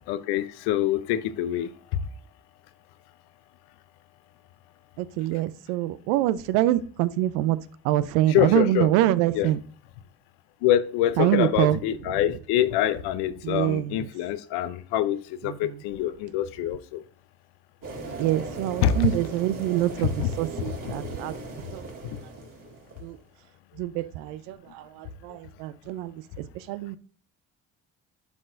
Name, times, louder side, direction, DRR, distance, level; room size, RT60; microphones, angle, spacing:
voice 1, 0.1-2.0 8.3-8.9 9.3-9.5 10.6-17.0 18.8-19.1 20.0-20.3 20.7-21.0 22.0-22.2, left 11 dB, 80° left, 14 dB, 0.6 m, -25 dB
voice 2, 5.0-7.6 7.8-9.6 11.2-11.8 13.4-14.0 15.5-15.7 18.2-21.3 21.7-21.8 23.0-23.2 23.8-26.1 26.7-27.0, right 14 dB, 85° right, 16 dB, 0.5 m, -25 dB
sound 1, 17.8-23.2, right 3 dB, 55° right, 2.1 m, -38 dB
10.5 x 4.0 x 2.5 m, 0.44 s
supercardioid pair, 65°, 38 cm